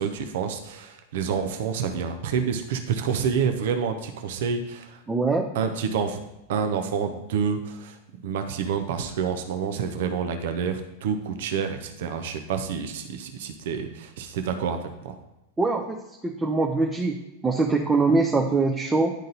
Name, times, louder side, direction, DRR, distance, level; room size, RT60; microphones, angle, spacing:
voice 1, 0.0-5.0 5.5-6.2 6.5-8.0 8.2-15.2, right 6 dB, 55° right, 7 dB, 0.7 m, -28 dB
voice 2, 5.1-5.5 15.6-16.0 16.2-17.2 17.4-19.1, right 3 dB, 10° right, 1 dB, 0.6 m, -23 dB
9.9 x 3.9 x 3.9 m, 0.92 s
figure-of-eight pair, 90°, 0 cm